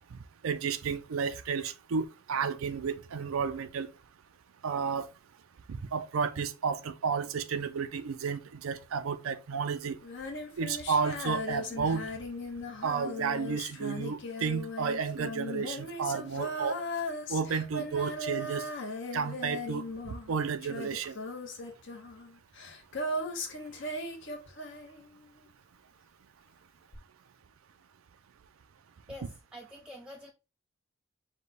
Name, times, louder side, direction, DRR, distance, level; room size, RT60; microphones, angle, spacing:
voice 1, 0.1-3.9 4.6-5.1 5.7-10.0 10.6-12.0 12.8-16.8 17.3-18.7 19.1-21.2, right 6 dB, 90° right, 0.5 m, -32 dB
Female singing, 10.0-25.4 26.9-27.0, left 1 dB, 60° left, 0.9 m, -38 dB
voice 2, 29.1-30.3, left 1 dB, 5° right, 0.5 m, -46 dB
5.0 x 2.2 x 4.0 m
head